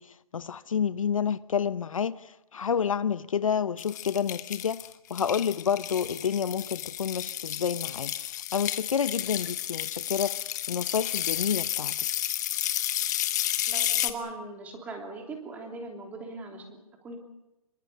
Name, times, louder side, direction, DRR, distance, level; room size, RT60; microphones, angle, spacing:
voice 1, 0.0-4.8 5.1-11.9, left 7 dB, 60° left, 0.9 m, -29 dB
sound 1, 3.8-14.1, left 12 dB, 30° left, 1.4 m, -31 dB
voice 2, 13.7-17.2, right 3 dB, 10° right, 3.1 m, -40 dB
27.5 x 23.5 x 6.7 m
hypercardioid pair, 165°, 19 cm